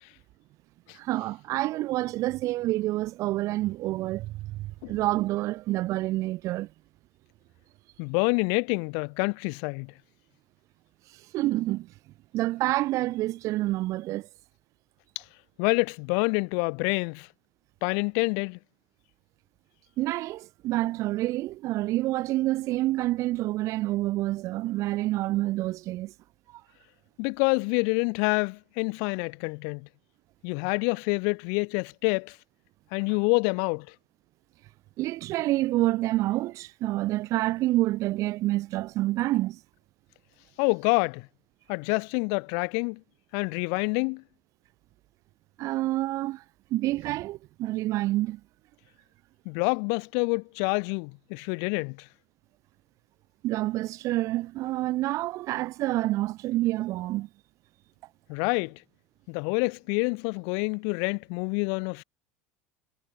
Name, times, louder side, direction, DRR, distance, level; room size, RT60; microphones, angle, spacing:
voice 1, 0.9-6.7 11.3-11.9 12.3-14.3 20.0-26.1 35.0-39.6 45.6-46.4 46.7-48.4 53.4-57.3, right 17 dB, 50° right, 3.1 m, -28 dB
voice 2, 8.0-9.9 15.6-17.3 17.8-18.6 27.2-29.9 30.4-32.4 32.9-33.9 40.6-41.3 41.7-43.0 43.3-44.2 49.5-52.1 58.3-58.8 59.3-62.0, left 40 dB or more, 60° left, 2.4 m, -27 dB
hypercardioid pair, 75°, 7 cm